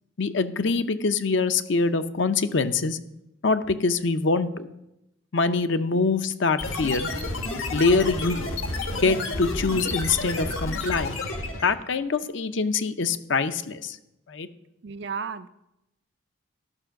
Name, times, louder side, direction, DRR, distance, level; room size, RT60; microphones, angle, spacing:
voice 1, 0.2-3.0 3.4-4.7 5.3-7.1 7.7-8.4 9.0-11.1 11.6-14.0 14.3-14.5, left 4 dB, 60° left, 10 dB, 0.6 m, -24 dB
sound 1, 6.6-11.8, left 2 dB, 75° left, 1.4 m, -30 dB
voice 2, 14.8-15.5, right 6 dB, 55° right, 12 dB, 0.4 m, -33 dB
12.5 x 6.1 x 5.8 m, 0.87 s
head